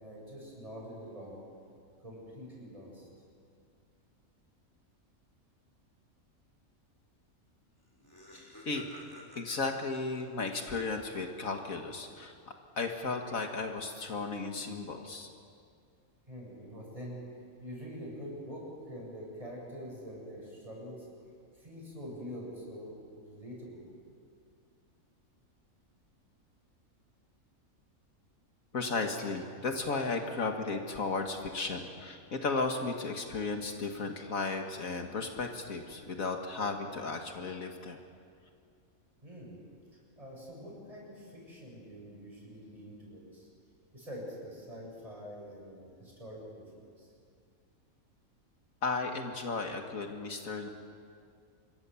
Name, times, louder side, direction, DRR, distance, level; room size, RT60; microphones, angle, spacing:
voice 1, 0.0-1.4 2.0-3.1 16.3-17.2 17.6-21.1 21.5-23.9 39.2-39.6 40.2-43.5 43.9-47.1, equal, 25° right, -3 dB, 7.9 m, -45 dB
Laughter, 7.5-7.6 7.8-11.4, equal, 15° left, 3.8 m, -53 dB
voice 2, 9.4-15.3 28.7-38.0 48.8-50.7, left 3 dB, 70° left, 4 dB, 2.0 m, -35 dB
26.0 x 23.5 x 7.1 m, 2.3 s
omnidirectional pair, 1.5 m